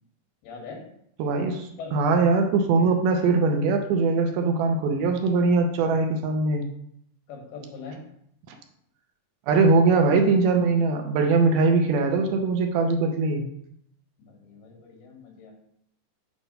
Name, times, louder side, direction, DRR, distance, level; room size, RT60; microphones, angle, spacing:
voice 1, 0.4-0.8 1.8-2.0 7.3-8.0 14.2-15.5, left 4 dB, 80° left, 0 dB, 3.4 m, -41 dB
voice 2, 1.2-6.6 8.5-8.6 9.5-13.4, right 3 dB, 80° right, 4 dB, 2.5 m, -21 dB
8.0 x 3.1 x 5.3 m, 0.72 s
omnidirectional pair, 4.5 m